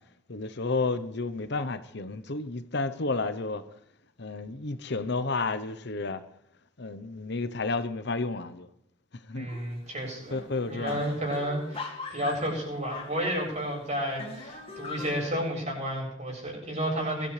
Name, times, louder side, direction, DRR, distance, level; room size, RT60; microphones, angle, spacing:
voice 1, 0.3-3.6 4.2-6.2 6.8-8.7 9.3-9.5 10.3-11.0, left 3 dB, 60° left, 1.0 m, -31 dB
voice 2, 9.3-10.4 10.7-17.3, equal, 35° right, 7.7 m, -31 dB
sound 1, 9.5-9.9 10.2-10.3 10.6-13.7 14.2-15.3, left 3 dB, 30° left, 2.3 m, -41 dB
23.0 x 13.5 x 3.4 m
head